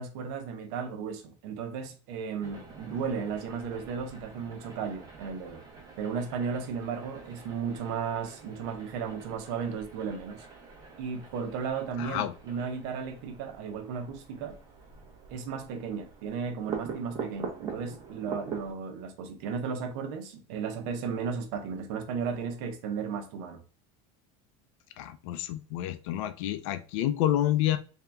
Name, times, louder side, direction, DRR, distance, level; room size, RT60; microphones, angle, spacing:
voice 1, 0.0-5.6 6.0-10.5 11.0-14.6 15.3-23.6, right 6 dB, 65° right, 0.8 m, -35 dB
sound 1, 2.4-18.7, right 5 dB, 25° right, 0.9 m, -45 dB
voice 2, 12.0-12.3 25.0-27.8, left 12 dB, 75° left, 0.5 m, -29 dB
3.5 x 2.8 x 3.4 m
cardioid pair, 150°, 16 cm